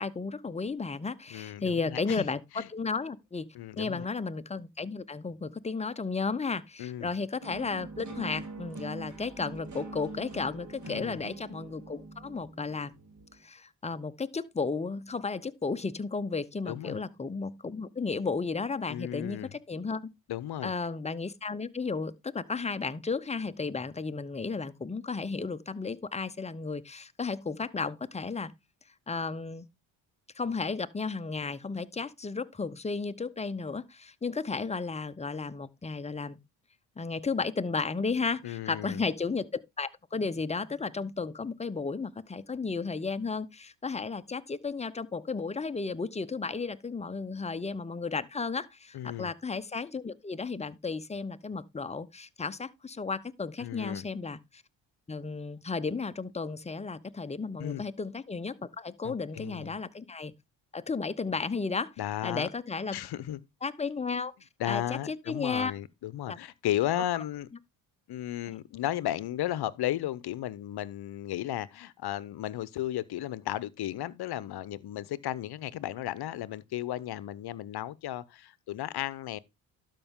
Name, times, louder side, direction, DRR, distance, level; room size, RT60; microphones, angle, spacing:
voice 1, 0.0-2.4 2.7-3.5 3.8-12.9 13.4-20.1 20.6-28.5 29.1-29.6 30.3-36.4 37.0-54.6 55.1-60.3 60.7-61.9 62.2-63.0 63.6-65.7 66.3-66.4, left 4 dB, 15° left, 0.8 m, -34 dB
voice 2, 1.3-2.3 2.5-2.7 3.5-4.1 6.8-7.1 10.9-11.2 16.7-17.0 18.9-19.5 20.3-20.7 38.4-39.0 48.9-49.3 53.6-54.1 57.6-57.8 59.0-59.7 62.0-62.5 62.9-63.4 64.6-67.5 68.1-79.4, left 13 dB, 55° left, 0.8 m, -34 dB
sound 1, 7.4-13.4, right 3 dB, 40° right, 2.7 m, -44 dB
12.0 x 5.4 x 3.7 m
supercardioid pair, 65°, 46 cm